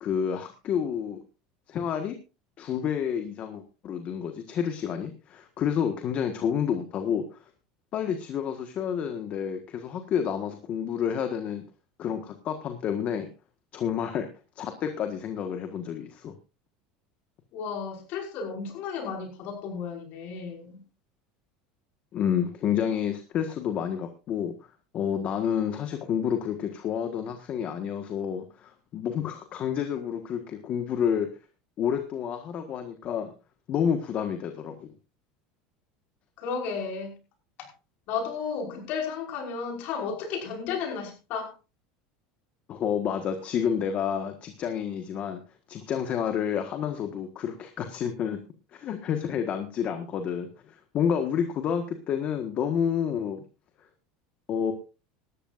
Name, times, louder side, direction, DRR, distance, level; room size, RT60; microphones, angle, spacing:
voice 1, 0.0-1.2 1.7-2.2 2.6-7.4 7.9-11.6 12.0-13.3 13.7-14.3 14.5-16.3 22.1-24.5 24.9-31.3 31.8-33.3 33.7-34.9 42.7-45.4 45.7-48.4 48.7-53.4 54.5-54.7, left 8 dB, 40° left, 6 dB, 1.6 m, -29 dB
voice 2, 17.5-20.8 36.4-37.1 37.6-37.7 38.1-41.5, left 5 dB, 55° left, 2 dB, 5.7 m, -33 dB
18.5 x 13.0 x 2.6 m, 0.30 s
supercardioid pair, 135°, 3 cm